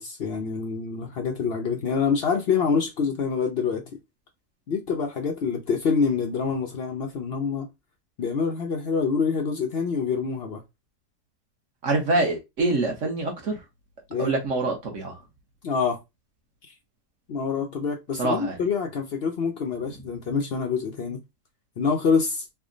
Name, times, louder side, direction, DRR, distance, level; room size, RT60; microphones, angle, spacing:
voice 1, 0.0-3.8 4.7-7.7 8.2-10.6 14.1-14.3 15.6-16.0 16.7-16.8 17.3-21.2 21.8-22.4, left 5 dB, 65° left, 0.6 m, -26 dB
voice 2, 11.8-13.6 14.2-15.2 18.2-18.6, right 2 dB, 55° right, 1.2 m, -25 dB
3.4 x 2.1 x 3.7 m
omnidirectional pair, 1.7 m